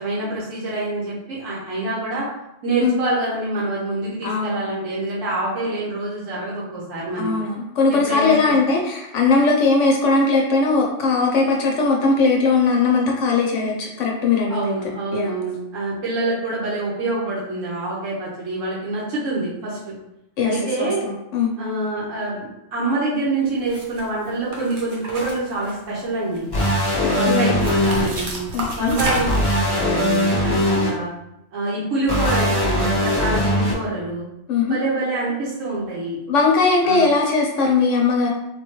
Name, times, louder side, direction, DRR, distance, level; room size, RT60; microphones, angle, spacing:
voice 1, 0.0-2.3 2.6-7.3 7.9-8.5 14.5-19.9 20.4-21.0 21.6-26.5 27.0-28.4 28.8-31.1 31.5-34.3 34.7-36.2 36.8-37.1, right 2 dB, 85° right, -7 dB, 1.4 m, -26 dB
voice 2, 4.2-4.6 7.2-14.8 15.1-15.3 20.4-21.5 27.3-27.6 28.5-28.9 30.7-30.9 34.5-34.8 36.3-38.3, left 4 dB, 75° left, 0 dB, 0.9 m, -19 dB
sound 1, 23.7-24.0 24.5-26.0 26.3-27.0 27.6-29.5, right 1 dB, 65° right, 1.1 m, -29 dB
sound 2, 26.5-28.1 29.2-30.9 32.1-33.7, equal, 25° left, 0.6 m, -20 dB
4.2 x 2.2 x 3.0 m, 0.88 s
omnidirectional pair, 1.3 m